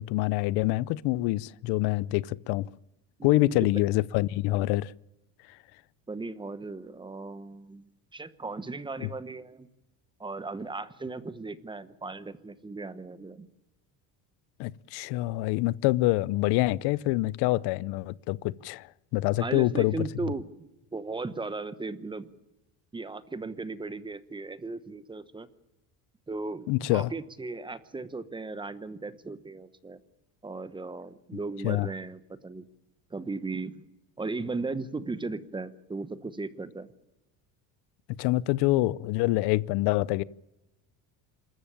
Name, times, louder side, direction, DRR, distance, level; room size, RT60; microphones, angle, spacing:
voice 1, 0.0-2.7 3.2-4.9 9.0-9.1 14.6-19.9 26.7-27.1 31.6-31.9 38.2-40.2, left 18 dB, 80° left, 0.7 m, -26 dB
voice 2, 3.2-3.8 6.1-9.7 10.2-13.5 19.4-20.7 20.9-22.3 22.9-25.5 26.3-30.0 30.4-32.7 33.1-33.8 34.2-36.9, right 3 dB, 10° right, 1.0 m, -37 dB
26.5 x 14.0 x 9.0 m
cardioid pair, 150°, 39 cm